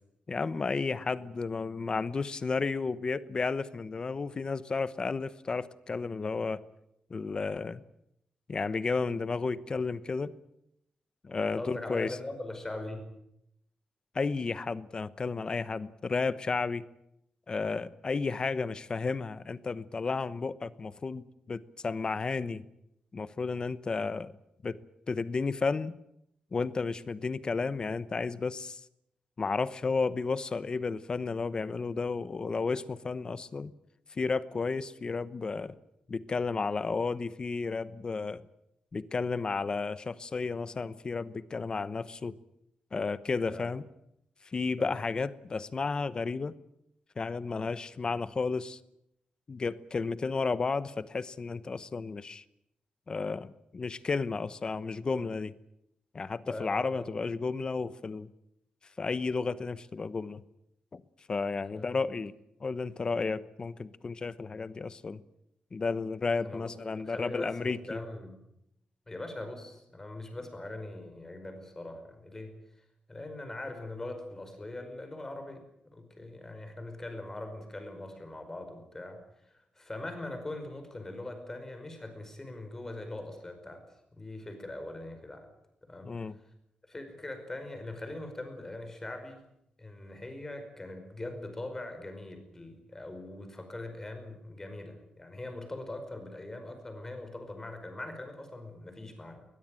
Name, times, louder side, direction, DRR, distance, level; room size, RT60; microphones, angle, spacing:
voice 1, 0.3-6.6 7.1-7.8 8.5-10.3 11.2-12.2 14.1-16.9 17.5-22.6 23.1-24.4 24.6-24.8 25.1-25.9 26.5-28.8 29.4-33.7 34.1-35.8 36.1-38.4 38.9-42.3 42.9-43.8 44.5-46.5 47.2-48.8 49.5-52.4 53.1-55.5 56.1-58.3 59.0-60.4 60.9-61.0 61.3-62.3 62.6-65.2 65.7-68.0 86.0-86.4, left 4 dB, 35° left, 16 dB, 1.0 m, -32 dB
voice 2, 11.5-13.1 43.5-43.7 44.8-45.0 56.4-57.1 61.7-61.9 66.4-68.4 69.1-72.6 73.1-75.6 75.9-83.8 84.1-85.5 85.8-86.2 86.9-89.4 89.8-99.5, left 2 dB, 15° left, 6 dB, 5.1 m, -41 dB
21.0 x 21.0 x 9.0 m, 0.79 s
wide cardioid pair, 165°, 3 cm